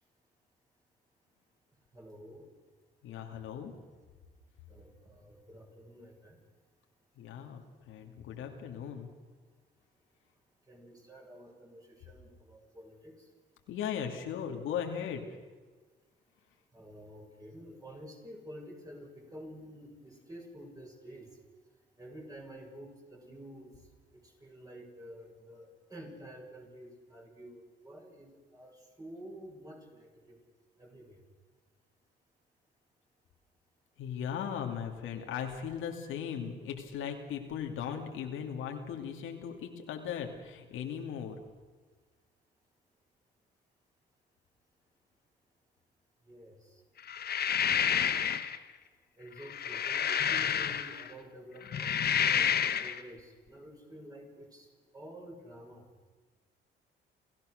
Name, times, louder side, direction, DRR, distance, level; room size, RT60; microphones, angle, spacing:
voice 1, 1.9-2.4 4.7-6.4 10.7-13.3 16.7-21.3 22.0-23.7 24.4-30.4 30.8-31.2 46.3-46.8 49.2-52.5 52.8-54.7 54.9-55.9, equal, 20° right, 0 dB, 7.0 m, -50 dB
voice 2, 3.0-3.7 7.2-9.1 13.7-15.2 34.0-41.4, left 8 dB, 85° left, 3 dB, 2.4 m, -38 dB
sound 1, 47.1-48.6 49.4-51.1 51.6-53.0, left 8 dB, 50° left, 1.1 m, -29 dB
29.5 x 15.0 x 6.5 m, 1.4 s
cardioid pair, 90°, 20 cm